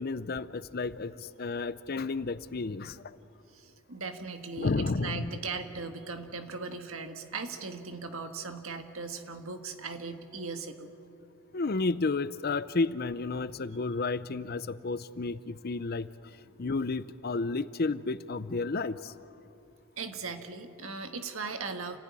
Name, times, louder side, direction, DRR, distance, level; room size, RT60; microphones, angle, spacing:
voice 1, 0.0-3.2 4.6-5.3 11.5-16.1 16.6-19.1, left 3 dB, 45° left, 15 dB, 0.6 m, -32 dB
voice 2, 3.5-10.9 20.0-22.0, right 4 dB, 70° right, 6 dB, 1.7 m, -38 dB
28.5 x 16.0 x 9.8 m, 2.7 s
head